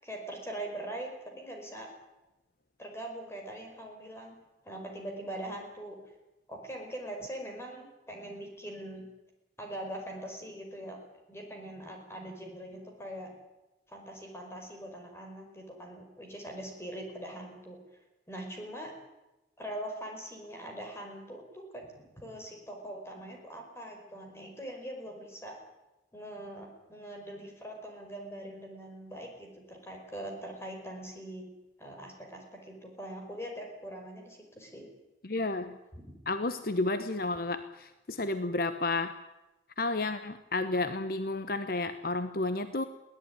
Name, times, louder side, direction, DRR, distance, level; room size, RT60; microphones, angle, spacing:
voice 1, 0.0-1.9 2.8-4.4 4.6-6.0 6.5-9.0 9.6-11.0 11.3-13.3 13.9-17.8 18.3-18.9 19.6-21.9 22.2-25.6 26.1-31.5 31.8-34.9 35.9-36.0, right 1 dB, 15° left, 2 dB, 5.3 m, -42 dB
voice 2, 35.2-35.8 36.3-39.2 39.8-42.8, left 2 dB, 50° left, 11 dB, 0.9 m, -31 dB
22.0 x 17.5 x 9.7 m, 1.0 s
head